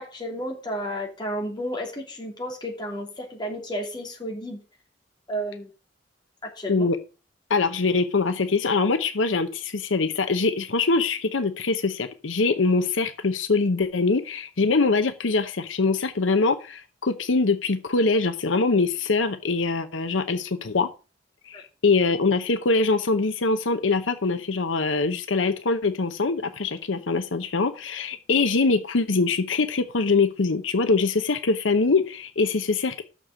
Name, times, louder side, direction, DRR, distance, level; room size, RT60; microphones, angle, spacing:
voice 1, 0.0-4.6 5.3-5.7 6.4-6.9 21.5-21.6, equal, 25° left, 0 dB, 2.9 m, -32 dB
voice 2, 7.5-20.9 21.5-33.1, left 3 dB, 85° left, 9 dB, 0.8 m, -23 dB
6.6 x 6.4 x 7.5 m, 0.34 s
head